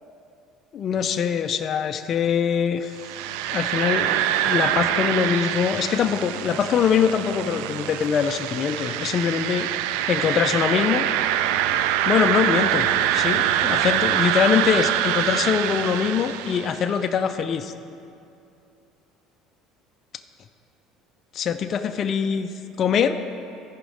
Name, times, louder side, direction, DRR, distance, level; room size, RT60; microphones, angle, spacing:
voice 1, 0.7-3.0 3.5-9.7 10.1-11.1 12.1-12.9 13.1-17.7 21.3-22.5 22.8-23.2, left 7 dB, 35° left, 7 dB, 0.4 m, -23 dB
sound 1, 3.0-16.9, right 11 dB, 85° right, 0.3 m, -24 dB
14.5 x 5.1 x 4.9 m, 2.6 s
cardioid pair, 150°, 0 cm